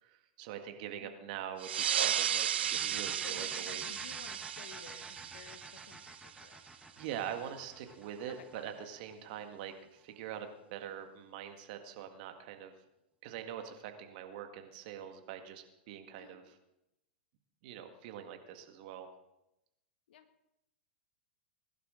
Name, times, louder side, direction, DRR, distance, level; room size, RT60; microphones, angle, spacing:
voice 1, 0.0-2.5 2.8-3.9 7.0-12.7 13.2-16.4 17.6-19.1, right 9 dB, 50° right, 6 dB, 1.8 m, -44 dB
voice 2, 0.9-1.3 2.6-2.7 3.2-6.6 8.3-8.7 16.2-16.4 20.1-20.3, left 8 dB, 60° left, 9 dB, 1.5 m, -54 dB
sound 1, 1.6-6.7, right 10 dB, 70° right, 0.5 m, -35 dB
sound 2, 2.6-10.1, right 1 dB, 5° right, 1.3 m, -50 dB
21.0 x 11.5 x 3.8 m, 0.90 s
figure-of-eight pair, 100°, 6 cm